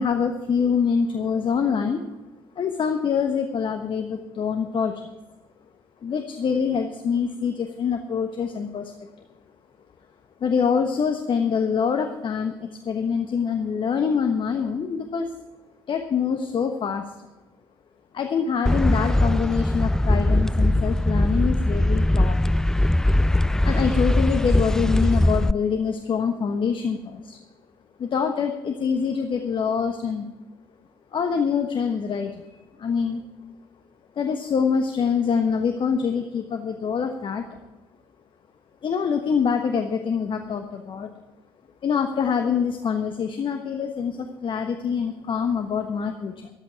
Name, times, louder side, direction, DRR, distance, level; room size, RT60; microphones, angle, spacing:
voice 1, 0.0-2.0 2.6-4.9 6.0-8.9 10.4-15.3 15.9-17.0 18.1-22.4 23.6-27.4 28.0-30.3 31.1-32.5 32.8-33.2 34.2-37.6 38.8-41.1 41.8-46.5, left 6 dB, 45° left, 5 dB, 1.2 m, -25 dB
sound 1, 18.7-25.5, left 1 dB, 5° left, 0.3 m, -20 dB
14.0 x 11.5 x 4.7 m, 1.1 s
figure-of-eight pair, 45°, 12 cm